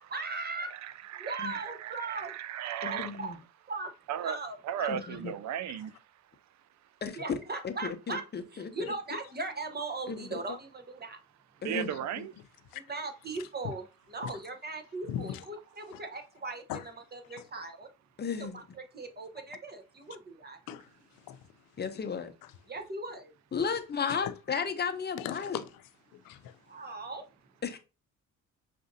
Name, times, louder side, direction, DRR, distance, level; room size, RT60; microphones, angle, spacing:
voice 1, 0.0-0.7 1.2-2.3 2.8-3.4 3.7-3.9 4.2-5.1 7.2-8.2 8.5-11.2 12.7-13.8 14.1-16.6 17.1-17.9 18.4-20.6 22.7-23.3 26.7-27.3, right 3 dB, 30° right, 0.9 m, -39 dB
voice 2, 0.7-3.2 4.1-4.4 4.6-5.9 11.6-12.3, right 10 dB, 55° right, 0.5 m, -36 dB
voice 3, 2.8-3.4 4.9-5.3 7.0-7.2 7.6-8.9 10.1-10.4 11.6-12.2 18.2-18.6 21.8-22.3 23.5-25.6 27.6-27.8, left 6 dB, 30° left, 0.7 m, -34 dB
voice 4, 8.9-9.2 11.8-12.0 12.7-12.8 13.4-13.7 14.2-14.3 15.1-15.4 15.9-16.0 16.7-16.9 17.2-17.5 19.4-19.5 20.7-21.5 22.4-22.5 24.1-24.3 25.2-25.7 26.1-26.6, left 10 dB, 85° left, 0.5 m, -40 dB
6.0 x 2.6 x 2.6 m
cardioid pair, 80°, 33 cm